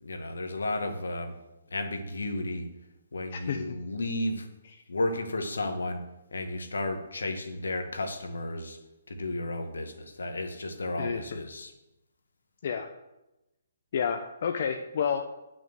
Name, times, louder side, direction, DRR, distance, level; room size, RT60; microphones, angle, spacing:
voice 1, 0.0-1.4 1.7-2.7 3.1-4.5 4.9-6.0 6.3-8.8 9.1-11.7, left 2 dB, 80° left, 6 dB, 1.7 m, -33 dB
voice 2, 3.3-3.8 11.0-11.4 12.6-12.9 13.9-15.3, left 7 dB, 55° left, 5 dB, 0.9 m, -30 dB
8.7 x 6.2 x 8.1 m, 0.95 s
figure-of-eight pair, 140°, 0 cm